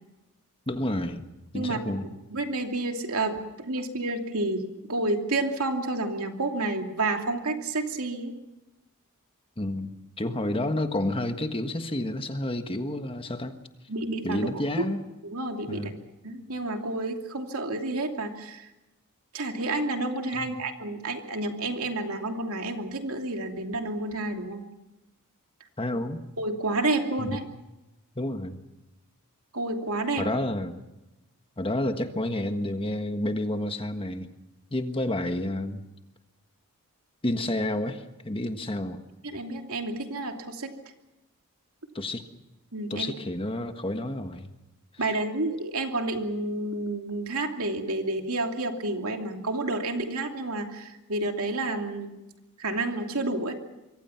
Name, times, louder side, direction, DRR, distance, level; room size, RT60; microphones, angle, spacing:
voice 1, 0.7-1.2 1.5-2.1 9.6-9.9 10.2-13.5 14.2-15.0 15.7-16.0 20.3-20.6 25.8-26.2 27.2-27.4 28.1-28.6 30.2-30.8 31.6-34.3 34.7-35.8 37.2-39.0 41.9-42.2 42.9-44.5, left 1 dB, 25° left, 7 dB, 1.5 m, -30 dB
voice 2, 2.3-8.3 13.9-14.9 15.2-15.9 16.2-18.7 19.3-24.6 26.4-27.4 29.5-30.2 39.2-40.7 42.7-43.1 45.0-52.1 52.6-53.6, right 2 dB, 70° right, 4 dB, 2.8 m, -30 dB
26.0 x 23.5 x 5.9 m, 0.98 s
head